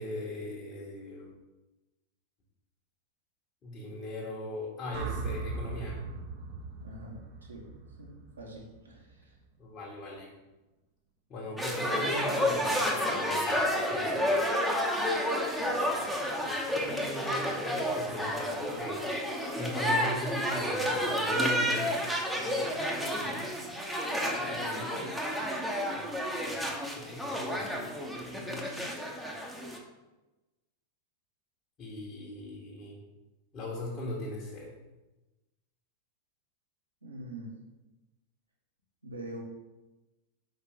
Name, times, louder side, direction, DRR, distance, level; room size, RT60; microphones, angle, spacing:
voice 1, 0.0-1.3 3.6-6.0 9.6-10.3 11.3-14.5 15.5-15.8 16.7-19.1 19.5-21.9 24.4-25.0 26.3-27.8 28.1-28.8 31.8-33.0 33.5-34.7, left 1 dB, 30° left, -6 dB, 1.4 m, -39 dB
sound 1, 4.9-9.1, right 4 dB, 45° right, 0.7 m, -39 dB
voice 2, 6.8-7.7 8.0-8.1 8.4-9.4 23.1-23.4 37.0-37.5 39.0-39.4, right 1 dB, 75° right, -2 dB, 1.3 m, -44 dB
sound 2, 11.6-29.8, equal, ahead, 0.9 m, -30 dB
5.0 x 4.0 x 5.0 m, 1.1 s
figure-of-eight pair, 90°, 0 cm